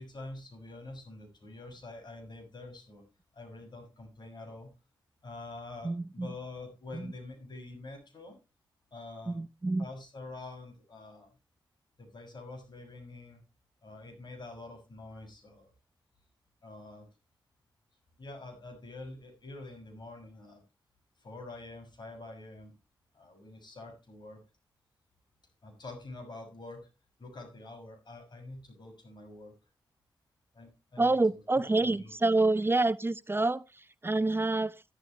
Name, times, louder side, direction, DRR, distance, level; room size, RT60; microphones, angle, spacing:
voice 1, 0.0-3.0 3.3-4.7 5.2-8.4 8.9-9.4 9.8-11.3 12.0-13.4 13.8-15.7 16.6-17.1 18.2-20.6 21.2-22.7 23.1-24.4 25.6-26.9 27.2-29.5 30.5-31.1 31.8-32.1, left 2 dB, 65° left, 6.3 m, -46 dB
voice 2, 5.8-6.3 6.9-7.1 9.3-9.8 31.0-34.8, right 2 dB, 30° right, 0.6 m, -28 dB
14.0 x 12.0 x 3.1 m
cardioid pair, 50°, 8 cm